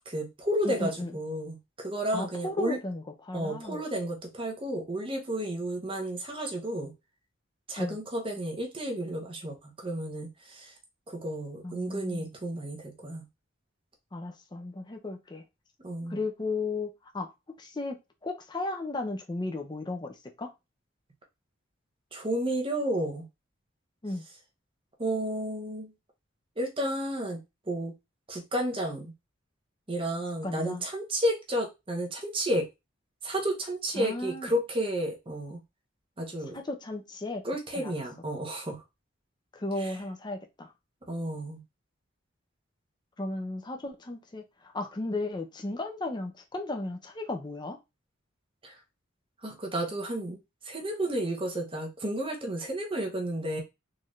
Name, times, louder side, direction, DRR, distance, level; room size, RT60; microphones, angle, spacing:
voice 1, 0.1-2.8 3.3-6.9 7.7-10.7 11.1-13.3 15.8-16.2 22.1-23.3 25.0-25.9 26.6-27.4 27.7-27.9 28.3-29.1 29.9-32.7 33.2-35.6 36.2-36.6 37.4-38.8 39.8-40.0 41.1-41.6 48.6-48.7 49.4-50.4 50.6-53.6, right 1 dB, 25° right, 1.0 m, -32 dB
voice 2, 0.6-1.1 2.1-3.8 7.8-8.0 11.6-12.3 14.1-15.4 16.1-16.9 17.1-17.3 17.6-18.0 18.2-20.5 24.0-24.2 30.4-30.8 34.0-34.5 36.5-37.4 37.7-37.9 39.5-40.7 43.2-47.8, left 2 dB, 20° left, 0.5 m, -35 dB
3.9 x 2.7 x 3.1 m
head